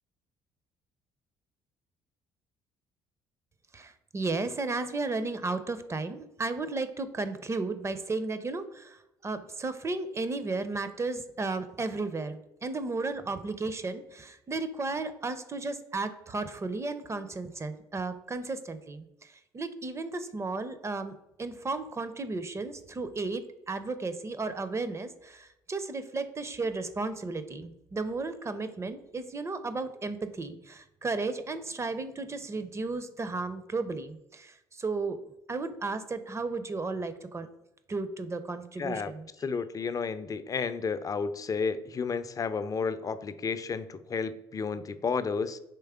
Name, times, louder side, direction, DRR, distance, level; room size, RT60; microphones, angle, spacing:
voice 1, 3.7-35.2 35.5-37.5 37.9-39.3, right 3 dB, 25° right, 11 dB, 0.5 m, -34 dB
voice 2, 38.8-39.1 39.4-45.6, left 5 dB, 30° left, 12 dB, 0.4 m, -32 dB
4.4 x 3.2 x 3.6 m, 0.84 s
supercardioid pair, 70°, 11 cm